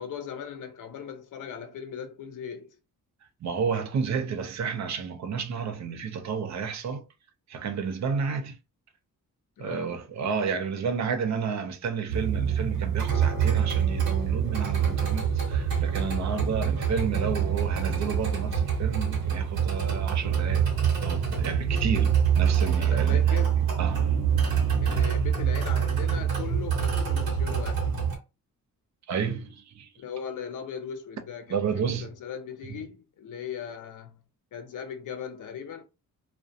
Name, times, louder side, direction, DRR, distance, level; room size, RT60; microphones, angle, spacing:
voice 1, 0.0-2.8 9.6-10.1 22.8-23.6 24.8-27.9 30.0-34.2 34.5-35.8, left 7 dB, 60° left, 0.6 m, -39 dB
voice 2, 3.4-7.0 7.5-8.6 9.6-20.7 21.0-23.5 23.8-25.0 29.1-29.9 31.5-32.1 32.7-32.8, right 6 dB, 50° right, 0.5 m, -31 dB
sound 1, 12.1-28.2, right 7 dB, 85° right, 0.9 m, -25 dB
2.4 x 2.1 x 2.6 m
wide cardioid pair, 130°, 35 cm